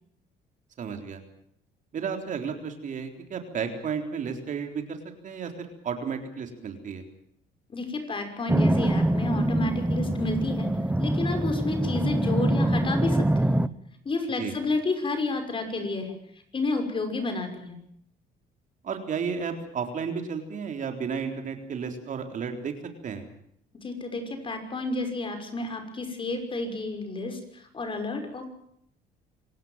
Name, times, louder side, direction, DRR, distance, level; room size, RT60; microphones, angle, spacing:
voice 1, 0.8-1.2 1.9-5.0 5.2-7.0 14.4-14.5 18.8-22.7 23.0-23.2, right 6 dB, 50° right, 5 dB, 3.8 m, -33 dB
voice 2, 7.7-10.7 11.0-13.5 14.0-16.1 16.5-17.8 23.8-28.5, left 3 dB, 30° left, 6 dB, 6.0 m, -30 dB
sound 1, 8.5-13.7, right 1 dB, 5° right, 0.9 m, -24 dB
26.5 x 17.5 x 7.4 m, 0.70 s
cardioid pair, 110°, 17 cm